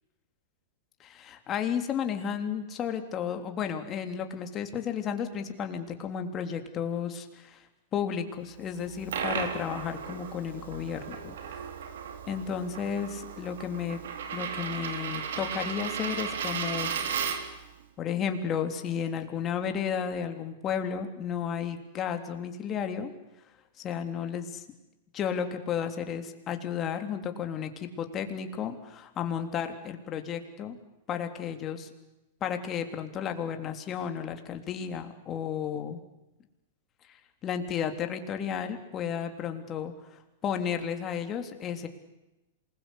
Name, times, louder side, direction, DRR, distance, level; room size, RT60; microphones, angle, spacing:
voice 1, 1.0-7.6 7.9-11.3 12.3-14.0 14.3-16.9 18.0-23.1 23.8-24.4 25.1-30.8 31.1-31.9 32.4-36.0 37.1-39.9 40.4-41.9, left 8 dB, 30° left, 6 dB, 3.4 m, -33 dB
Coin (dropping), 8.8-17.6, right 7 dB, 70° right, 3.5 m, -35 dB
27.5 x 21.5 x 8.3 m, 0.98 s
hypercardioid pair, 110°, 0 cm